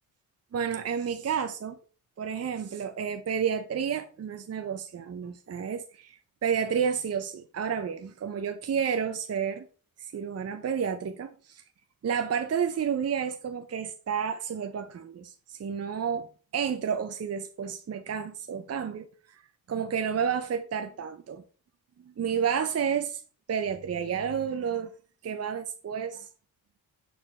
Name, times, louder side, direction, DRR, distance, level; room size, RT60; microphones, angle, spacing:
voice 1, 0.5-1.8 2.2-9.6 10.0-11.6 12.0-16.3 16.5-19.1 19.7-21.4 22.2-23.2 23.5-24.9 25.2-26.2, right 7 dB, 40° right, 0.7 m, -30 dB
6.7 x 4.4 x 3.2 m
supercardioid pair, 55°, 40 cm